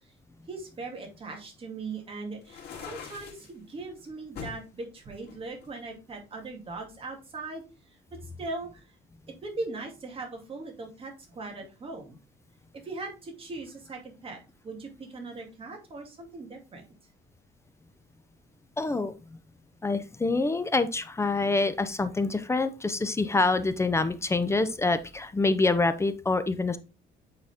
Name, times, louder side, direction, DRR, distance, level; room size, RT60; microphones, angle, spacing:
voice 1, 0.5-7.6 8.4-8.7 9.3-12.2 12.8-16.8, right 3 dB, 30° right, 1 dB, 2.3 m, -39 dB
sound 1, 2.4-3.5 4.4-4.6 5.3-6.3, left 6 dB, 55° left, 2.6 m, -42 dB
voice 2, 18.8-19.1 19.8-26.8, left 3 dB, 15° left, 11 dB, 0.6 m, -26 dB
8.9 x 4.1 x 3.5 m, 0.30 s
cardioid pair, 145°, 20 cm